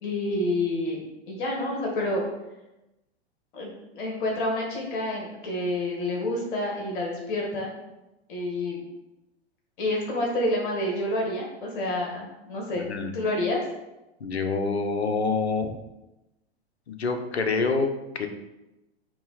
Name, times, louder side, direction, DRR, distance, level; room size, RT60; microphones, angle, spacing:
voice 1, 0.0-2.2 3.5-7.7 8.3-8.8 9.8-12.8 13.1-13.6, left 1 dB, 50° left, -1 dB, 1.8 m, -28 dB
voice 2, 12.8-13.1 14.2-15.7 16.9-18.3, left 4 dB, 70° left, 6 dB, 1.0 m, -27 dB
8.7 x 3.1 x 4.1 m, 0.97 s
figure-of-eight pair, 95°, 33 cm